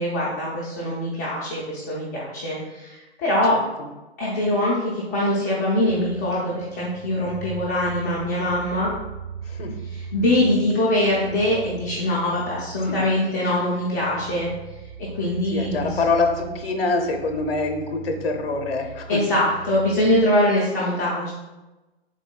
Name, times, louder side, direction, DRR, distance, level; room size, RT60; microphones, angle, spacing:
voice 1, 0.0-3.6 4.2-8.9 10.1-14.5 15.1-16.0 19.1-21.3, left 1 dB, 15° left, -7 dB, 0.4 m, -23 dB
voice 2, 3.5-3.9 9.4-9.8 12.9-13.1 15.5-19.2, left 3 dB, 65° left, 4 dB, 0.6 m, -25 dB
sound 1, 5.9-20.2, right 5 dB, 35° right, 0.8 m, -40 dB
3.8 x 3.5 x 2.2 m, 1.1 s
figure-of-eight pair, 115°, 33 cm